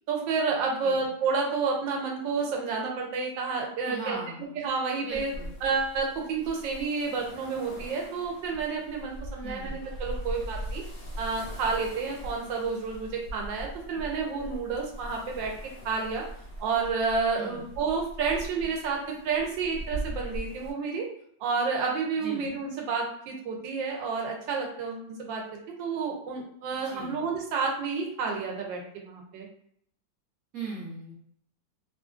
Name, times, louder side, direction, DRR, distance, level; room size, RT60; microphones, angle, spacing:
voice 1, 0.1-4.2 4.6-5.3 5.6-10.8 11.2-15.5 15.8-16.2 16.6-21.1 21.4-25.4 25.8-29.5, right 4 dB, 85° right, 0 dB, 1.4 m, -30 dB
voice 2, 3.8-4.5 5.0-5.5 9.4-9.8 17.3-17.7 22.2-22.5 26.7-27.2 30.5-31.1, right 3 dB, 60° right, -5 dB, 1.1 m, -39 dB
sound 1, 5.1-20.7, right 1 dB, 70° left, 0.5 m, -40 dB
3.1 x 2.4 x 2.4 m, 0.66 s
omnidirectional pair, 2.0 m